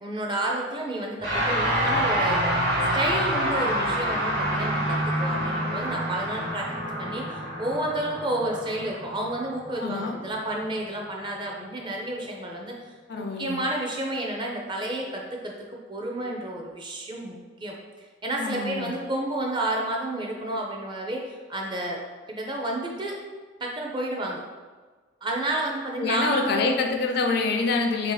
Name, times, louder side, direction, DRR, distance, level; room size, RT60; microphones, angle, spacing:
voice 1, 0.0-22.0 22.3-23.2 23.6-24.4 25.2-26.9, right 1 dB, 25° right, 0 dB, 0.5 m, -31 dB
sound 1, 1.2-10.7, equal, 50° right, 1.3 m, -27 dB
voice 2, 9.8-10.1 13.1-13.6 18.4-18.9 26.0-28.1, left 4 dB, 55° left, 3 dB, 0.4 m, -26 dB
3.2 x 2.8 x 3.9 m, 1.4 s
head